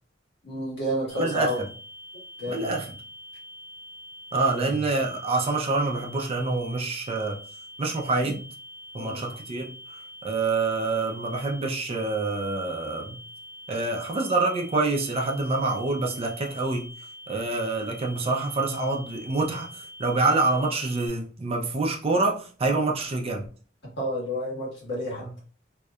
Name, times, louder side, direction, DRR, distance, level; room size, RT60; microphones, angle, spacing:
voice 1, 0.4-1.6 2.4-2.7 4.5-4.8 8.2-8.3 9.0-9.3 24.0-25.3, equal, 65° left, 1.3 m, -30 dB
sound 1, 1.1-21.1, equal, 75° right, 0.7 m, -45 dB
voice 2, 1.2-1.7 2.5-2.9 4.3-7.4 7.8-8.5 8.9-13.2 13.7-16.9 17.3-23.5 25.2-25.3, right 3 dB, 30° right, 0.4 m, -26 dB
2.7 x 2.1 x 2.3 m
head